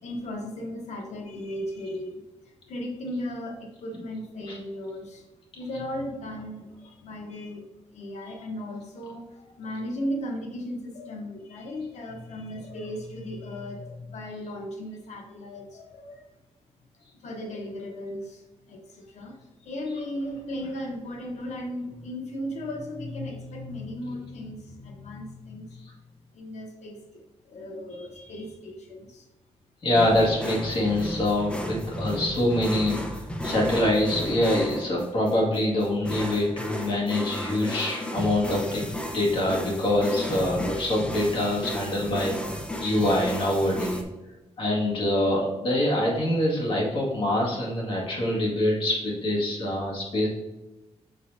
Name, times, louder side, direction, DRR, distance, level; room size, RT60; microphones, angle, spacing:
voice 1, 0.0-5.3 5.5-7.7 7.9-16.2 17.2-25.8 26.3-29.3, left 1 dB, 85° left, 2 dB, 1.1 m, -36 dB
voice 2, 29.8-42.3 42.8-44.0 44.6-50.3, left 1 dB, 50° left, -4 dB, 2.1 m, -25 dB
sound 1, 29.9-44.0, equal, 10° left, 0.8 m, -34 dB
6.6 x 6.5 x 2.7 m, 1.1 s
wide cardioid pair, 145°, 11 cm